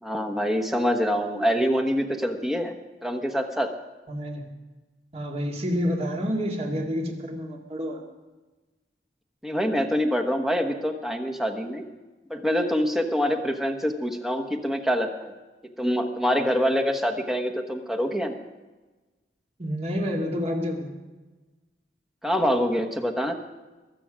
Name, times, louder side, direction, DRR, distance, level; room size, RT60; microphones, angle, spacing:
voice 1, 0.0-2.8 3.0-3.7 9.4-11.9 12.3-15.3 15.8-18.4 22.2-23.3, equal, ahead, 3 dB, 1.1 m, -25 dB
voice 2, 4.1-4.4 5.1-8.0 19.6-20.9, equal, 35° right, 2 dB, 2.2 m, -28 dB
22.0 x 7.8 x 6.2 m, 1.2 s
head